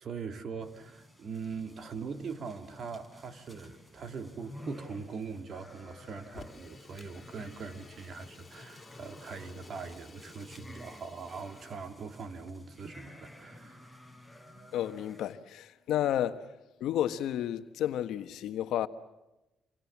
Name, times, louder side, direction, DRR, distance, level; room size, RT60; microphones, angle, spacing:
voice 1, 0.0-13.9, right 5 dB, 55° right, 2.9 m, -41 dB
sound 1, 0.6-15.3, left 1 dB, 10° right, 5.4 m, -52 dB
Fire, 6.3-11.9, left 4 dB, 30° left, 3.9 m, -54 dB
voice 2, 14.7-16.5 16.8-18.9, left 11 dB, 80° left, 1.3 m, -31 dB
27.5 x 27.0 x 7.3 m
cardioid pair, 90°, 0 cm